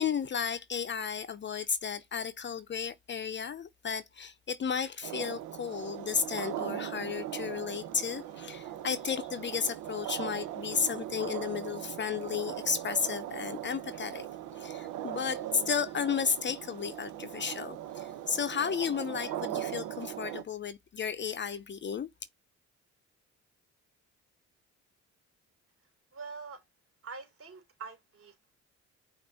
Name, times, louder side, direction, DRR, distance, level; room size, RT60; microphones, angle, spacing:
voice 1, 0.0-14.3 14.5-22.1, left 6 dB, 40° left, 0.6 m, -33 dB
sound 1, 5.0-20.4, right 12 dB, 90° right, 0.6 m, -39 dB
voice 2, 26.1-26.6 27.0-28.6, right 5 dB, 45° right, 3.3 m, -45 dB
5.4 x 2.5 x 3.8 m
cardioid pair, 90°, 30 cm